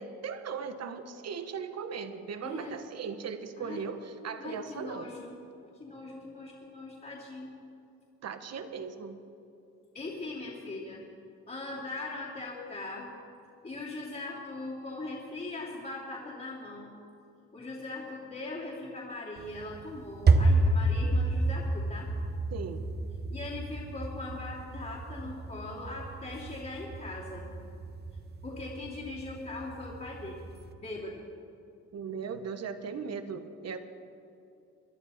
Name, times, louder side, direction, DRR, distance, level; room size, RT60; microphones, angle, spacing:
voice 1, 0.0-5.1 8.2-9.2 22.5-22.8 31.9-33.8, right 6 dB, 55° right, 9 dB, 1.2 m, -38 dB
voice 2, 2.4-2.7 3.6-3.8 4.4-5.3 5.8-7.5 9.9-11.0 11.5-13.2 13.6-16.9 17.5-22.1 23.3-27.5 28.4-30.4 30.8-31.3, left 2 dB, 30° left, -8 dB, 2.9 m, -40 dB
sound 1, 19.4-30.7, right 2 dB, 35° right, 1.1 m, -30 dB
22.5 x 11.0 x 4.3 m, 2.6 s
cardioid pair, 90°, 30 cm